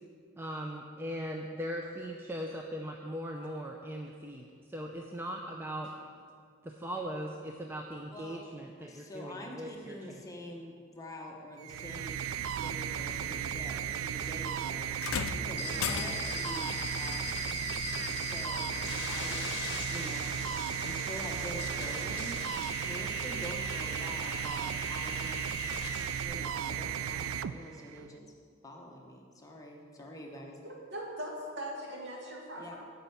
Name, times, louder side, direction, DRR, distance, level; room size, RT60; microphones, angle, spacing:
voice 1, 0.4-5.9 6.6-10.2, equal, 10° right, 1 dB, 0.5 m, -39 dB
voice 2, 8.1-8.4 8.9-12.3 12.6-14.9 15.3-17.6 18.1-18.7 19.1-20.3 20.8-22.4 22.8-25.7 26.2-28.3 28.6-30.6 32.6-32.8, equal, 15° left, 0 dB, 1.0 m, -45 dB
sound 1, 11.6-28.1, right 9 dB, 90° right, 0.4 m, -35 dB
sound 2, 15.0-16.5 18.0-18.2 19.0-19.1, left 8 dB, 80° left, 0.4 m, -36 dB
sound 3, 15.6-26.2, left 6 dB, 55° left, 0.9 m, -41 dB
voice 3, 30.6-32.8, equal, 55° right, -2 dB, 2.0 m, -41 dB
10.0 x 5.4 x 8.2 m, 2.1 s
head